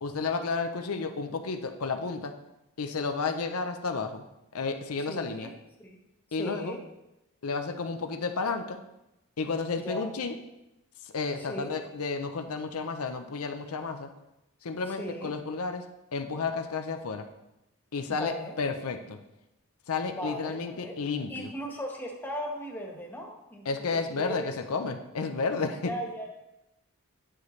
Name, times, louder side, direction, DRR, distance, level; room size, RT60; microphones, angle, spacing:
voice 1, 0.0-2.3 2.8-4.3 4.5-5.5 6.3-6.8 7.4-8.8 9.4-10.4 11.0-14.1 14.6-15.9 16.1-17.3 17.9-19.2 19.9-21.5 23.6-25.9, left 4 dB, 90° left, 6 dB, 0.6 m, -32 dB
voice 2, 5.1-5.5 5.8-6.0 6.4-6.8 9.8-10.1 11.5-11.8 15.0-15.3 18.1-18.6 20.1-20.9 21.3-24.5 25.8-26.3, equal, 10° left, -1 dB, 1.3 m, -37 dB
9.9 x 6.7 x 3.2 m, 0.92 s
head